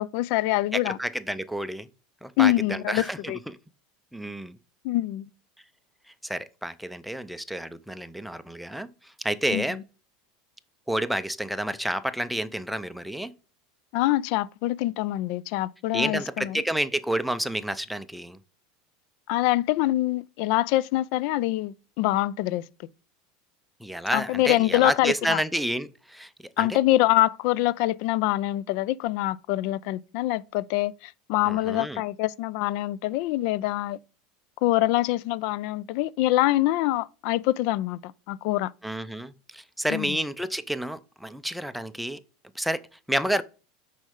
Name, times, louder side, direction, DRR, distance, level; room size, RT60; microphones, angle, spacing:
voice 1, 0.0-1.0 2.4-3.4 4.8-5.3 9.5-9.8 13.9-16.6 19.3-22.6 24.1-25.4 26.6-34.0 34.6-38.7 39.9-40.2, left 16 dB, 65° left, 0.3 m, -25 dB
voice 2, 0.7-1.9 2.2-3.6 4.1-4.6 6.2-9.8 10.9-13.3 15.9-18.4 23.8-26.3 26.6-26.8 31.4-32.0 38.8-42.2 42.6-43.4, right 1 dB, ahead, 0.5 m, -30 dB
6.1 x 4.3 x 3.6 m
supercardioid pair, 120°, 0 cm